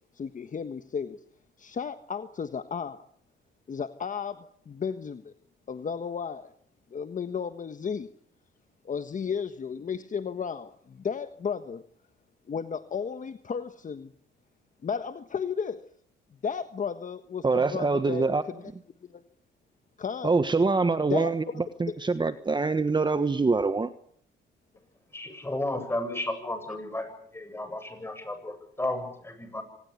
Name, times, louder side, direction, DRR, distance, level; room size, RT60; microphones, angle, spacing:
voice 1, 0.1-1.2 1.6-3.1 3.7-5.3 5.7-6.5 6.9-8.1 8.8-11.8 12.5-14.1 14.8-15.8 16.4-18.7 19.0-19.2 20.0-20.3 21.1-21.3, left 6 dB, 40° left, 10 dB, 1.4 m, -34 dB
voice 2, 17.4-18.4 20.2-21.4 21.8-23.9, right 4 dB, 20° right, 11 dB, 1.3 m, -24 dB
voice 3, 25.1-29.6, left 1 dB, 10° left, 8 dB, 7.9 m, -33 dB
25.5 x 19.5 x 8.4 m, 0.63 s
cardioid pair, 90°, 20 cm